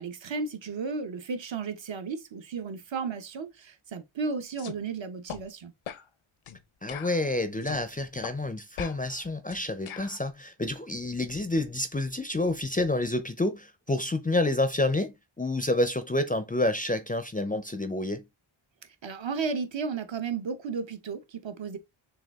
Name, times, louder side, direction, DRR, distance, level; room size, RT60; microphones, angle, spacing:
voice 1, 0.0-5.7 19.0-21.8, right 5 dB, 65° right, 0.9 m, -34 dB
sound 1, 4.6-4.8 5.3-5.4 5.9-6.1 6.5-6.6 6.9-7.8 8.2-8.4 8.8-10.2, left 9 dB, 75° left, 0.7 m, -41 dB
voice 2, 6.8-18.2, left 2 dB, 20° left, 0.4 m, -29 dB
6.5 x 2.3 x 3.5 m
wide cardioid pair, 105°, 49 cm